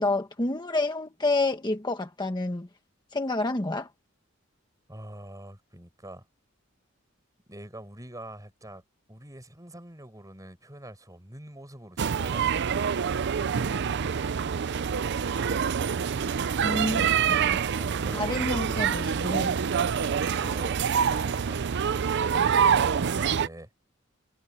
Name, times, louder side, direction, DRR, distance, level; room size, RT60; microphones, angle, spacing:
voice 1, 0.0-2.7 3.1-3.9 16.6-17.6 18.1-19.5, left 2 dB, 20° left, 1.1 m, -29 dB
voice 2, 4.9-6.3 7.5-8.8 9.1-12.9 17.6-18.6 19.7-21.6 22.4-23.7, right 1 dB, 15° right, 7.0 m, -45 dB
sound 1, 12.0-23.5, right 7 dB, 55° right, 0.5 m, -26 dB
head